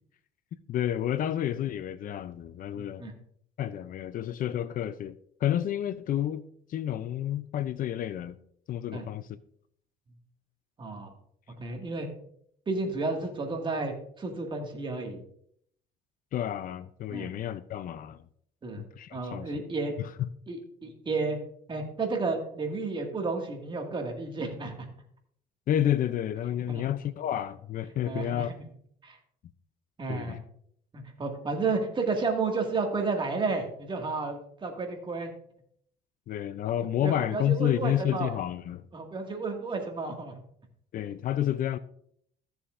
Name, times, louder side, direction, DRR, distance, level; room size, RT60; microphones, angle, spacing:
voice 1, 0.7-3.0 3.6-5.1 5.4-6.4 6.7-8.4 8.7-9.3 16.3-18.2 18.8-19.5 20.2-20.3 25.7-28.5 30.1-30.4 36.3-38.9 40.9-41.8, left 11 dB, 55° left, 0.5 m, -30 dB
voice 2, 2.8-3.1 8.9-9.0 10.8-11.1 11.6-12.1 12.7-15.2 17.1-17.3 18.6-18.8 19.1-19.9 20.5-21.4 21.7-24.8 26.7-26.8 28.0-28.6 29.0-29.2 30.0-30.4 31.2-35.3 37.0-38.4 38.9-40.3, right 3 dB, 30° right, 2.0 m, -32 dB
14.5 x 7.0 x 2.5 m
cardioid pair, 110°, 17 cm